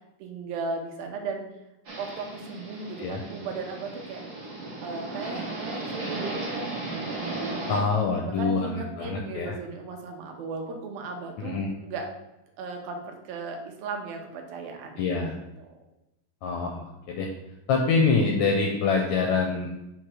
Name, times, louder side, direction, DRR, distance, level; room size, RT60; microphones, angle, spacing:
voice 1, 0.2-1.5 2.0-4.2 4.8-7.6 8.2-12.1 12.6-15.4 15.7-15.8, right 4 dB, 85° right, 3 dB, 2.8 m, -36 dB
sound 1, 1.8-7.8, right 2 dB, 45° right, 1.3 m, -35 dB
voice 2, 7.7-9.5 11.4-11.7 15.0-15.3 16.4-17.3 17.7-19.7, left 4 dB, 80° left, 2 dB, 1.6 m, -25 dB
7.6 x 3.8 x 4.8 m, 0.91 s
omnidirectional pair, 4.1 m